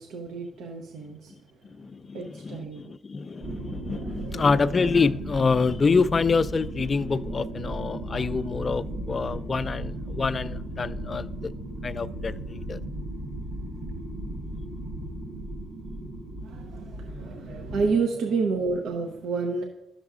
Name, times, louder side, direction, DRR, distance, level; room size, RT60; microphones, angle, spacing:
voice 1, 0.0-1.7 2.1-3.4 3.9-4.4 16.4-19.6, right 4 dB, 85° right, 0.6 m, -30 dB
voice 2, 1.6-11.5 11.8-12.8, left 4 dB, 40° left, 0.3 m, -26 dB
sound 1, 3.4-17.9, right 1 dB, 70° right, 1.5 m, -35 dB
11.0 x 6.7 x 2.5 m
cardioid pair, 75°, 0 cm